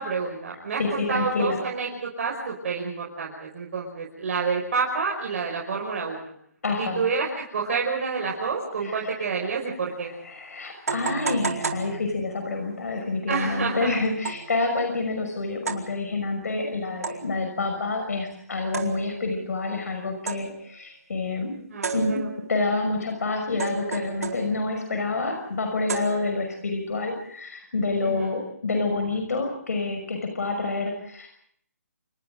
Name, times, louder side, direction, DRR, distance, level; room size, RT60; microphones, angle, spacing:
voice 1, 0.0-6.2 6.8-10.1 13.3-14.0 21.7-22.3 28.0-28.4, right 5 dB, 55° right, -2 dB, 5.8 m, -29 dB
voice 2, 0.8-1.6 6.6-7.1 8.8-9.1 10.1-21.5 21.9-22.2 22.5-31.3, left 3 dB, 70° left, 4 dB, 6.0 m, -28 dB
sound 1, 9.9-10.0 10.9-12.5 14.2-14.6 15.7-16.0 17.0-17.5 18.7-19.4 20.3-20.7 21.8-22.6 23.6-24.8 25.9-26.6, right 5 dB, 70° right, 4.4 m, -32 dB
29.5 x 28.0 x 3.9 m, 0.65 s
hypercardioid pair, 150°, 9 cm